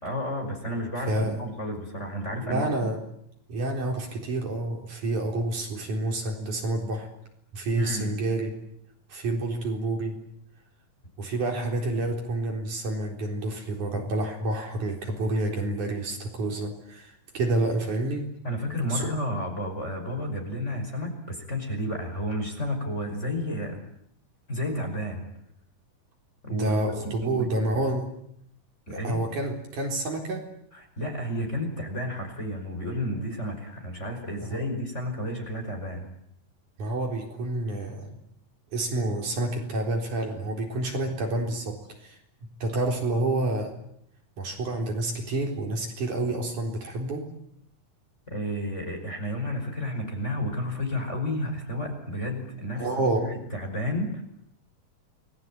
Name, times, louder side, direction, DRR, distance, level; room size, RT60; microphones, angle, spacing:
voice 1, 0.0-2.9 7.7-8.1 18.4-23.8 24.5-25.3 26.4-26.8 27.0-27.5 28.9-29.2 30.7-36.1 48.3-54.2, equal, 20° left, 3 dB, 5.7 m, -31 dB
voice 2, 1.1-1.4 2.4-3.0 3.5-7.1 7.5-8.5 9.1-10.2 11.2-18.3 18.9-19.1 26.5-28.1 28.9-30.5 34.4-34.6 36.8-38.2 38.7-42.2 42.6-43.7 44.4-47.3 52.8-53.3, right 2 dB, 60° right, 2 dB, 5.4 m, -29 dB
29.5 x 21.0 x 9.0 m, 0.74 s
omnidirectional pair, 4.0 m